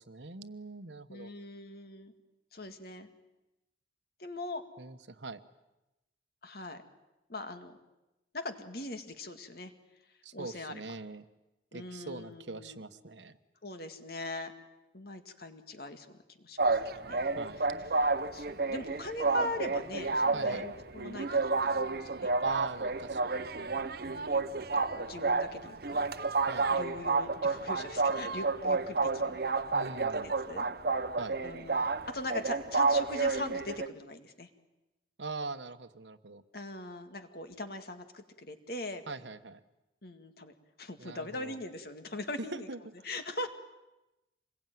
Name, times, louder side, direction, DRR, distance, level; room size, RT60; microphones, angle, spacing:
voice 1, 0.0-1.3 4.8-5.4 10.2-11.2 11.7-13.4 17.4-17.6 20.3-20.7 22.4-23.4 26.4-26.8 29.7-30.3 31.2-31.4 35.2-36.4 39.1-39.6 41.0-41.6 42.4-42.8, right 3 dB, 75° right, 11 dB, 1.2 m, -42 dB
voice 2, 1.1-2.1 2.5-3.1 4.2-4.6 6.4-6.8 7.3-7.8 8.3-9.7 10.3-10.8 11.7-12.8 13.6-14.5 14.9-16.1 16.4-16.8 17.1-17.2 18.3-22.3 24.0-26.1 26.7-29.3 30.4-30.7 31.4-34.5 36.5-39.0 40.0-40.5 40.8-42.7 43.0-43.5, left 2 dB, 55° left, 7 dB, 2.1 m, -41 dB
sound 1, 16.6-33.9, right 3 dB, 55° right, 0.9 m, -30 dB
26.0 x 21.5 x 9.3 m, 0.98 s
head